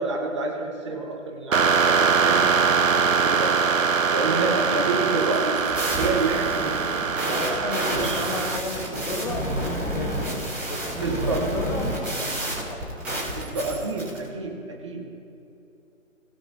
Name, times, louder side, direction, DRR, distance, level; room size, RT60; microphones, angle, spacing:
voice 1, 0.0-3.6 4.1-5.7 5.9-6.9 7.2-8.4 11.0-11.5 13.3-15.1, right 3 dB, 20° right, 1 dB, 1.3 m, -29 dB
sound 1, 1.5-8.6, right 5 dB, 75° right, 0.7 m, -22 dB
sound 2, 5.2-14.2, right 1 dB, 5° right, 1.8 m, -30 dB
voice 2, 7.2-13.1 13.4-13.6, left 2 dB, 30° left, -1 dB, 1.2 m, -34 dB
20.5 x 7.9 x 2.8 m, 2.8 s
figure-of-eight pair, 150°, 40 cm